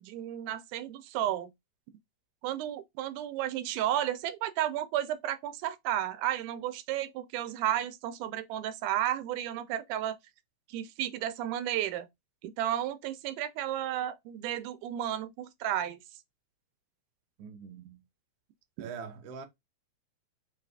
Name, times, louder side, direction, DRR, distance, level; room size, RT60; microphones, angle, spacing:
voice 1, 0.0-1.5 2.4-10.1 10.7-12.1 12.4-16.0 18.8-18.9, right 12 dB, 85° right, 2.1 m, -33 dB
voice 2, 17.4-18.0 18.8-19.5, right 6 dB, 70° right, 1.6 m, -43 dB
5.2 x 2.4 x 3.3 m
omnidirectional pair, 3.5 m